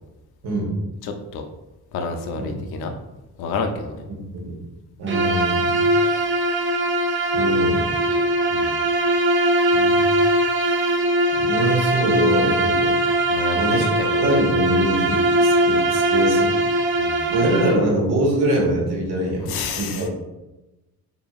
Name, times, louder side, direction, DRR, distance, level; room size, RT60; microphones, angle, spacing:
voice 1, 0.4-0.8 2.3-2.5 4.3-4.6 5.0-5.8 7.3-7.9 9.7-10.2 11.4-12.9 13.5-13.9 14.2-16.5 17.3-19.4 19.7-20.1, right 1 dB, 75° right, -2 dB, 1.2 m, -23 dB
voice 2, 1.0-1.5 1.9-3.0 3.4-4.0 8.5-8.8 13.3-14.4 17.0-17.3 19.4-20.1, left 4 dB, 70° left, 5 dB, 0.5 m, -29 dB
Bowed string instrument, 5.1-17.8, right 1 dB, 30° right, 0.5 m, -20 dB
4.8 x 2.7 x 2.4 m, 1.0 s
cardioid pair, 130°, 39 cm